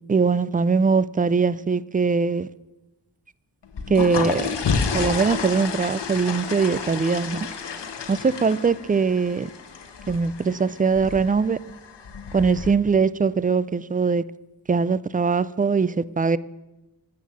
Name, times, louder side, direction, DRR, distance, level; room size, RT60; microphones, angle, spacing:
voice 1, 0.1-2.5 3.9-4.5 4.9-7.4 8.1-9.5 10.1-11.6 12.3-14.2 14.7-16.4, right 5 dB, 20° right, 0.3 m, -21 dB
sound 1, 3.6-12.7, left 5 dB, 80° left, 1.3 m, -30 dB
13.5 x 7.5 x 8.5 m
wide cardioid pair, 105°, 41 cm